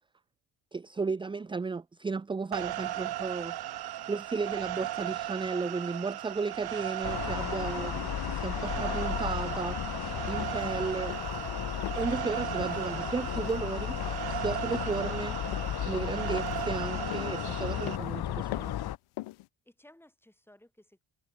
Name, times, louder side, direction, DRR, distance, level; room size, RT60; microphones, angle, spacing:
voice 1, 0.7-11.2 12.0-14.0 14.3-15.4 15.8-18.7, right 4 dB, 10° right, 0.3 m, -34 dB
sound 1, 2.5-18.0, right 13 dB, 50° right, 0.7 m, -37 dB
sound 2, 7.0-19.0, left 12 dB, 50° left, 1.0 m, -34 dB
sound 3, 10.4-10.7 11.1-11.4 11.8-12.1 12.6-12.8 13.3-13.6 14.0-14.3 14.7-15.0 15.5-15.9 16.3-16.7 17.1-17.4 17.9-18.1 18.5-18.9 19.2-19.5, left 19 dB, 85° left, 0.7 m, -41 dB
voice 2, 12.9-13.5 19.6-21.0, left 1 dB, 5° left, 6.8 m, -58 dB
cardioid pair, 130°, 48 cm